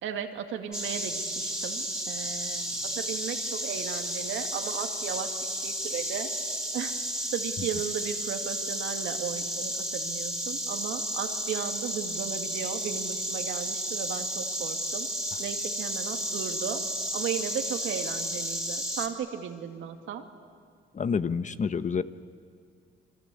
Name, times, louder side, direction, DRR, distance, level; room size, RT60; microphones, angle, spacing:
voice 1, 0.0-2.7 3.0-5.4 5.6-6.3 6.7-6.9 7.3-15.1 15.4-16.8 17.1-20.2, right 8 dB, 80° right, 5 dB, 2.3 m, -35 dB
Insect, 0.7-19.1, right 1 dB, 5° right, 3.3 m, -32 dB
voice 2, 20.9-22.0, left 6 dB, 40° left, 12 dB, 1.1 m, -28 dB
27.5 x 23.0 x 8.6 m, 2.3 s
cardioid pair, 90°, 20 cm